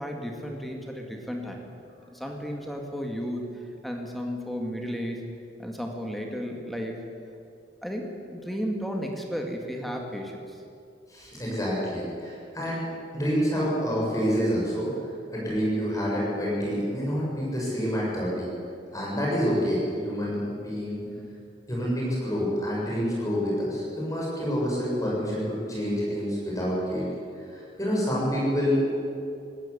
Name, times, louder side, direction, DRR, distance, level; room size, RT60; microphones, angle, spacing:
voice 1, 0.0-1.6 2.1-5.2 5.6-7.0 7.8-10.6 21.1-21.4, equal, ahead, 1 dB, 2.0 m, -34 dB
voice 2, 11.1-12.8 13.1-14.9 15.3-18.5 18.9-21.0 21.7-27.1 27.5-29.0, equal, 20° left, -5 dB, 7.4 m, -27 dB
18.0 x 15.0 x 10.0 m, 2.5 s
head